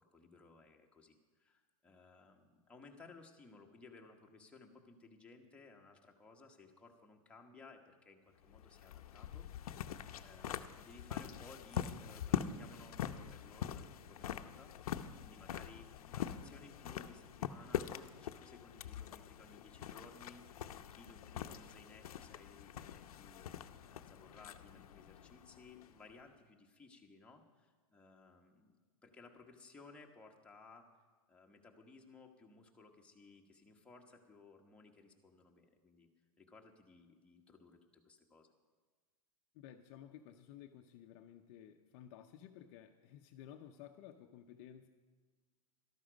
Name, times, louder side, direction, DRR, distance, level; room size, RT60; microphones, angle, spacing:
voice 1, 0.0-9.5 9.7-17.9 18.2-20.4 20.7-23.5 23.9-30.9 31.3-36.1 36.4-38.5, left 3 dB, 5° left, 0 dB, 1.2 m, -59 dB
sound 1, 8.4-26.1, left 9 dB, 80° left, 0.7 m, -44 dB
voice 2, 39.5-44.9, left 10 dB, 45° left, 6 dB, 0.7 m, -55 dB
13.0 x 12.5 x 5.1 m, 1.4 s
hypercardioid pair, 140°, 19 cm